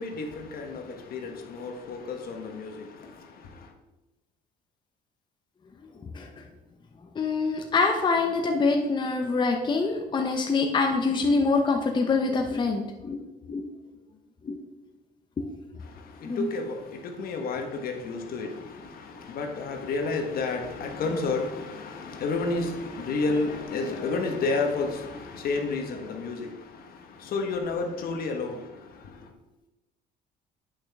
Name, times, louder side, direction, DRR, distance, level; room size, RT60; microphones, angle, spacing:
voice 1, 0.0-3.7 15.8-29.3, left 3 dB, 60° left, 1.2 m, -31 dB
voice 2, 7.2-13.2 13.5-13.6 14.4-14.6 15.4-15.5 16.2-16.5, left 4 dB, 25° left, 0.8 m, -25 dB
8.6 x 5.8 x 3.5 m
cardioid pair, 110°, 17 cm